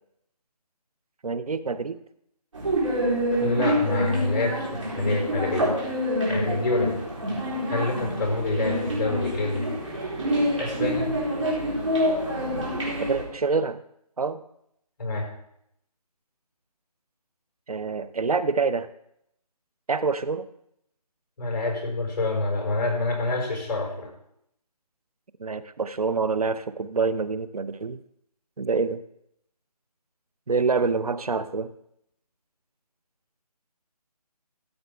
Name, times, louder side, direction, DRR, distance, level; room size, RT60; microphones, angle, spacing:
voice 1, 1.2-2.0 13.0-13.8 14.2-14.4 17.7-18.9 19.9-20.5 25.4-28.0 28.6-29.0 30.5-31.7, right 4 dB, 65° right, 14 dB, 0.7 m, -26 dB
sound 1, 2.5-13.2, equal, 50° right, 3.8 m, -27 dB
voice 2, 3.4-5.9 6.3-6.9 7.7-9.7 10.6-11.1 15.0-15.3 21.4-24.1, left 2 dB, 35° left, -2 dB, 4.7 m, -27 dB
14.0 x 8.0 x 3.4 m, 0.75 s
figure-of-eight pair, 170°, 21 cm